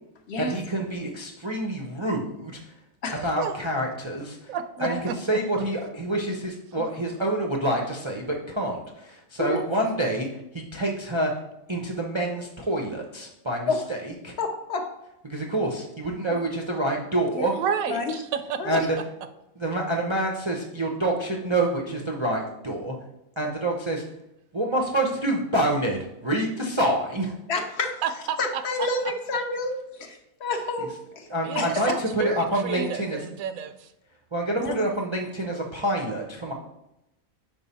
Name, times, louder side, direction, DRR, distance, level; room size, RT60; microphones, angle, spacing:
voice 1, 0.4-2.7 3.2-4.5 4.8-10.3 10.5-11.3 11.7-14.3 15.3-17.6 18.6-19.0 19.6-22.9 23.4-24.0 24.5-27.3 31.3-33.2 34.3-36.5, right 1 dB, 40° right, -1 dB, 0.4 m, -27 dB
voice 2, 4.5-5.1 17.6-18.8 28.0-28.6 31.4-33.9, right 7 dB, 85° right, 10 dB, 1.0 m, -31 dB
voice 3, 14.4-14.9 17.4-17.5 17.9-18.1 18.6-18.8 27.5-28.0 28.4-31.3 31.5-31.7 32.7-32.9 34.6-34.7, left 3 dB, 60° left, 4 dB, 0.9 m, -29 dB
5.4 x 4.6 x 4.1 m, 0.87 s
omnidirectional pair, 1.4 m